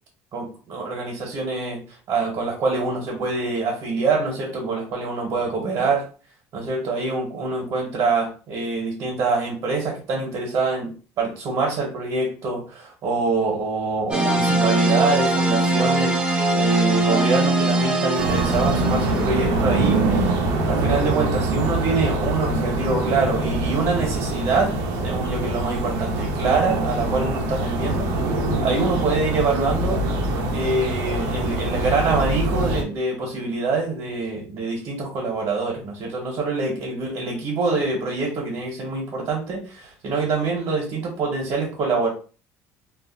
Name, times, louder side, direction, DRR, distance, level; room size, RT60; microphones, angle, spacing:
voice 1, 0.3-6.1 6.5-20.4 20.6-28.1 28.6-30.0 30.5-42.1, right 3 dB, 50° right, 1.1 m, -25 dB
sound 1, 14.1-19.3, right 2 dB, 15° right, 0.6 m, -21 dB
sound 2, 18.1-32.8, right 2 dB, 80° right, 0.7 m, -24 dB
2.5 x 2.0 x 3.8 m
cardioid pair, 140°, 6 cm